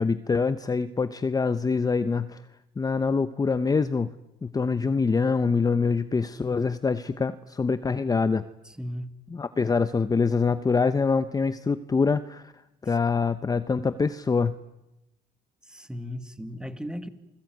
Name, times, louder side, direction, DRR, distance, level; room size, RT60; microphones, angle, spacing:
voice 1, 0.0-2.4 2.8-4.1 4.4-8.5 9.3-12.5 12.8-14.5, left 4 dB, 20° left, 12 dB, 1.0 m, -25 dB
voice 2, 8.6-9.1 9.6-9.7 12.9-13.0 15.6-17.1, equal, 5° right, 10 dB, 2.3 m, -37 dB
28.0 x 20.5 x 9.4 m, 0.91 s
cardioid pair, 110°, 17 cm